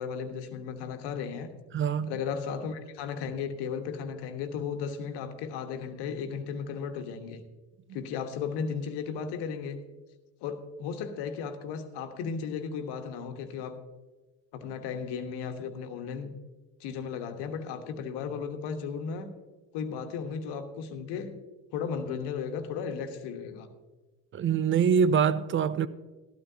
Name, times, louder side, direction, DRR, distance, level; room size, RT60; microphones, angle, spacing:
voice 1, 0.0-1.5 2.1-7.4 7.9-9.8 10.4-13.8 14.5-16.3 16.8-19.3 19.7-21.4 21.7-23.7, left 6 dB, 55° left, 1.4 m, -35 dB
voice 2, 1.7-2.1 24.3-25.9, right 7 dB, 25° right, 0.5 m, -24 dB
14.0 x 12.5 x 2.8 m
figure-of-eight pair, 60°, 49 cm